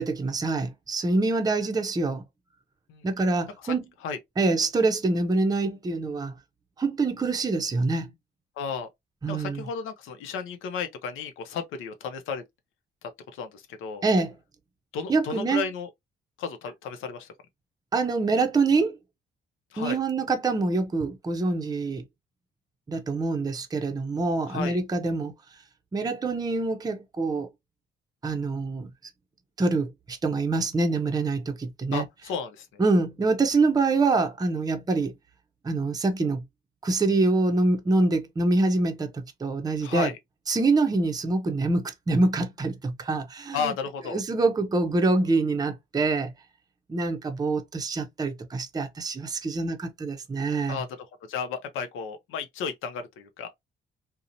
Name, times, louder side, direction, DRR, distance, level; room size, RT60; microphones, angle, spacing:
voice 1, 0.0-2.2 3.0-3.8 4.4-6.3 6.8-8.1 9.2-9.6 14.0-14.3 15.1-15.6 17.9-19.0 19.8-22.0 22.9-25.3 25.9-27.5 28.2-28.9 29.6-32.1 32.8-35.1 35.6-36.4 36.8-40.1 40.5-43.7 44.1-46.3 46.9-50.8, right 3 dB, 20° right, 0.5 m, -25 dB
voice 2, 8.6-8.9 9.3-12.4 13.0-14.1 14.9-15.9 16.4-17.3 19.7-20.0 24.5-24.8 31.9-32.8 39.8-40.2 43.5-44.2 50.7-50.9 51.3-53.5, left 6 dB, 85° left, 0.6 m, -33 dB
2.8 x 2.0 x 2.5 m
cardioid pair, 90°, 20 cm